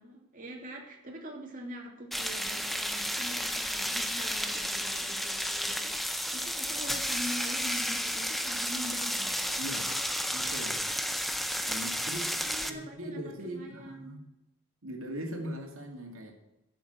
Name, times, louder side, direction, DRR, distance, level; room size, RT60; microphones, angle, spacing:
voice 1, 0.0-9.4 12.4-14.1, equal, 35° right, 0 dB, 2.7 m, -44 dB
sound 1, 2.1-12.7, equal, ahead, 0.6 m, -32 dB
voice 2, 9.6-10.0 10.3-10.9 11.6-14.2 14.8-16.3, equal, 65° right, 3 dB, 2.5 m, -40 dB
12.0 x 7.0 x 8.1 m, 0.92 s
head